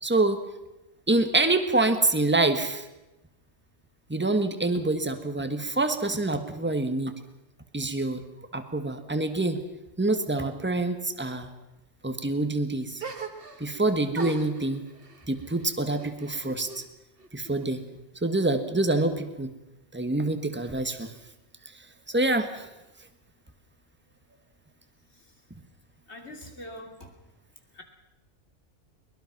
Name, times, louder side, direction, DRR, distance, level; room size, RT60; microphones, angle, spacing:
voice 1, 0.0-0.4 1.1-2.8 4.1-7.1 7.7-8.2 8.5-9.6 10.0-11.5 12.0-13.0 13.6-14.8 15.3-16.8 17.3-17.8 18.2-19.5 19.9-21.1 22.1-22.7, right 2 dB, 10° right, 8 dB, 1.5 m, -26 dB
sound 1, 13.0-13.8 14.1-16.9 17.2-18.0, right 4 dB, 55° right, 1.9 m, -41 dB
voice 2, 26.1-27.1 27.8-27.9, left 1 dB, 70° left, 3 dB, 3.3 m, -43 dB
22.5 x 21.0 x 6.0 m, 0.96 s
omnidirectional pair, 1.2 m